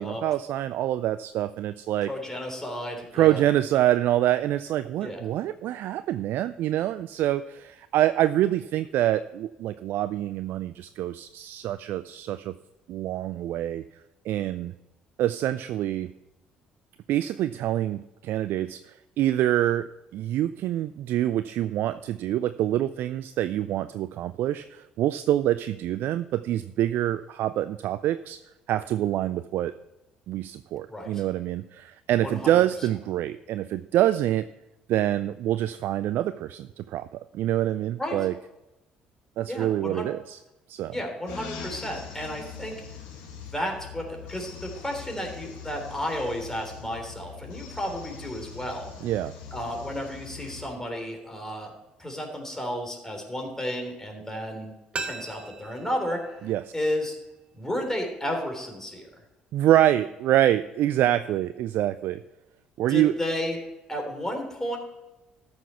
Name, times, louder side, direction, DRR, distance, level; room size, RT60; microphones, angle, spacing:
voice 1, 0.0-2.1 3.1-12.5 12.9-13.8 14.3-14.7 15.2-16.1 17.1-19.9 20.1-28.4 28.7-29.7 30.3-34.5 34.9-38.3 39.4-40.4 40.7-41.0 49.0-49.3 56.4-56.6 59.5-62.2 62.8-63.2, right 13 dB, 60° right, 13 dB, 0.3 m, -26 dB
voice 2, 2.1-3.4 5.0-5.2 30.9-31.2 32.2-32.6 38.0-38.2 39.5-40.1 40.9-42.8 43.3-48.9 49.5-51.7 52.0-54.7 55.0-57.2 57.5-59.1 62.9-63.6 63.9-64.8, equal, 10° left, 2 dB, 3.4 m, -32 dB
sound 1, 41.3-50.7, left 7 dB, 75° left, 1.9 m, -42 dB
sound 2, 54.9-57.7 58.0-58.1, right 4 dB, 30° right, 1.2 m, -40 dB
13.5 x 6.2 x 5.6 m, 1.0 s
hypercardioid pair, 50°, 4 cm